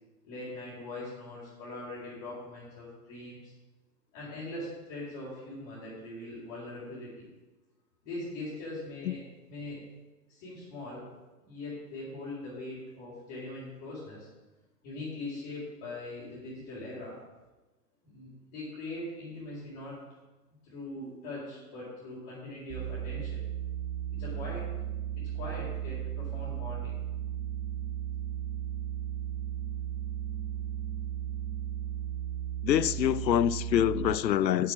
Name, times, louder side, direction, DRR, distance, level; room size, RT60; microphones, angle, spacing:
voice 1, 0.2-3.5 4.1-7.3 8.0-9.8 10.3-11.1 11.4-14.3 14.8-17.2 18.0-20.0 20.6-23.4 24.2-24.7 25.2-26.9, left 2 dB, 35° left, -8 dB, 4.4 m, -41 dB
sound 1, 21.0-22.1 23.0-23.1 23.8-23.9 24.1-32.0 32.5-32.6, right 4 dB, 5° right, 0.5 m, -55 dB
sound 2, 22.7-34.1, right 11 dB, 35° right, 1.6 m, -35 dB
voice 2, 32.6-34.7, left 11 dB, 85° left, 18 dB, 0.6 m, -25 dB
8.0 x 7.4 x 7.5 m, 1.1 s
hypercardioid pair, 125°, 50 cm